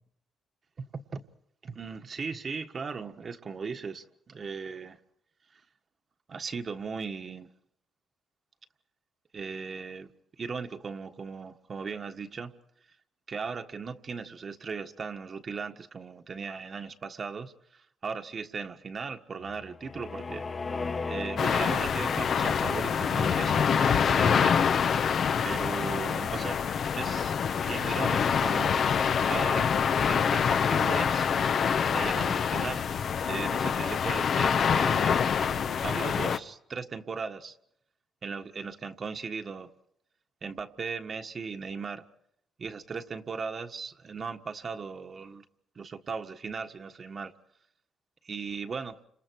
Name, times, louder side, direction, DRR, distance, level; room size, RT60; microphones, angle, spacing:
voice 1, 1.6-5.0 6.3-7.5 9.3-10.1 10.4-12.5 13.3-20.4 21.0-24.6 25.4-26.7 26.9-28.9 29.3-29.7 30.0-31.3 31.8-32.8 33.3-35.3 35.8-37.6 38.2-39.7 40.4-42.0 42.6-45.4 45.7-47.3 48.2-49.0, right 5 dB, 45° right, 1.5 m, -37 dB
sound 1, 19.4-24.0, left 4 dB, 35° left, 1.5 m, -37 dB
sound 2, 21.4-36.4, left 7 dB, 60° left, 1.1 m, -26 dB
30.0 x 27.5 x 4.7 m
cardioid pair, 90°, 0 cm